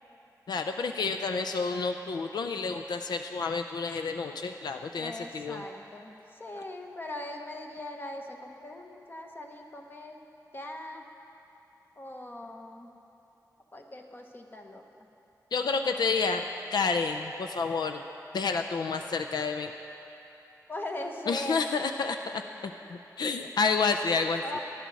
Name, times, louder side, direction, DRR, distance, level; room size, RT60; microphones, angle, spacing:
voice 1, 0.5-5.6 15.5-16.4 16.7-18.0 18.3-19.7 21.3-24.4, left 4 dB, 85° left, 6 dB, 0.5 m, -29 dB
voice 2, 5.0-10.2 10.5-11.0 12.0-12.9 13.7-14.8 20.7-21.7 22.7-22.8 24.4-24.6, left 1 dB, 30° left, 2 dB, 1.1 m, -40 dB
18.0 x 11.5 x 4.1 m, 2.9 s
wide cardioid pair, 130°, 7 cm